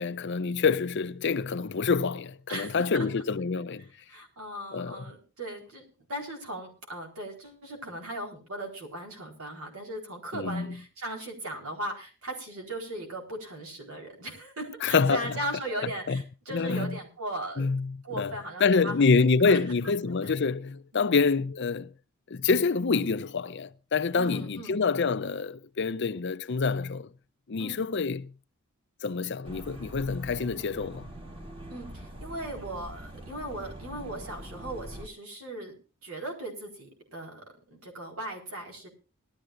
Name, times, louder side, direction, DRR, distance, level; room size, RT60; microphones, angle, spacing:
voice 1, 0.0-3.9 4.7-5.0 10.3-10.8 14.8-15.4 15.8-16.2 16.5-17.0 17.6-18.3 18.6-21.9 22.3-27.1 27.5-28.3 29.0-31.1, left 4 dB, 55° left, 0.6 m, -27 dB
voice 2, 2.5-3.1 4.1-17.7 18.0-19.6 19.8-19.9 20.2-20.3 20.9-21.1 24.2-24.7 27.6-27.8 31.7-35.8 36.0-37.4 37.7-38.9, right 1 dB, 75° right, 4.3 m, -38 dB
sound 1, 29.4-35.1, equal, 25° right, 1.7 m, -43 dB
19.0 x 13.0 x 2.6 m
head